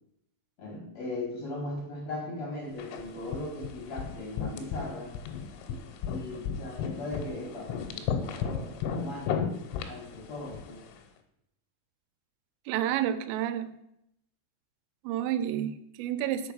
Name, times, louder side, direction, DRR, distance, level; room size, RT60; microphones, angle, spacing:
voice 1, 0.6-5.1 6.1-9.5 9.8-10.8, left 2 dB, 60° left, -3 dB, 1.7 m, -38 dB
sound 1, 2.8-11.0, left 7 dB, 80° left, 3.1 m, -35 dB
voice 2, 12.7-13.7 15.0-16.5, right 11 dB, 85° right, 13 dB, 3.1 m, -30 dB
6.7 x 4.7 x 6.2 m, 0.79 s
omnidirectional pair, 5.7 m